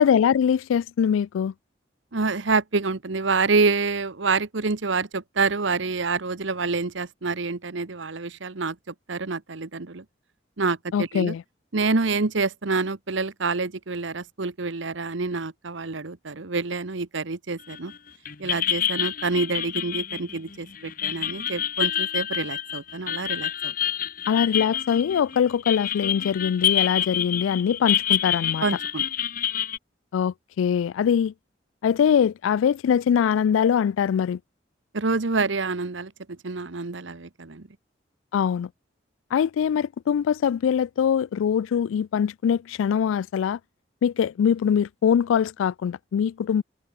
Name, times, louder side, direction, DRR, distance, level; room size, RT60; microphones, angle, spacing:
voice 1, 0.0-1.5 10.9-11.4 24.3-28.6 30.1-31.3 31.8-34.4 38.3-38.7 39.3-43.6 44.0-46.6, left 8 dB, 90° left, 0.3 m, -22 dB
voice 2, 2.1-10.0 10.6-11.3 11.7-17.9 18.4-23.7 28.6-29.0 34.9-37.7, right 4 dB, 75° right, 1.1 m, -27 dB
sound 1, 17.7-18.0 18.3-29.8, left 10 dB, 45° left, 1.2 m, -27 dB
head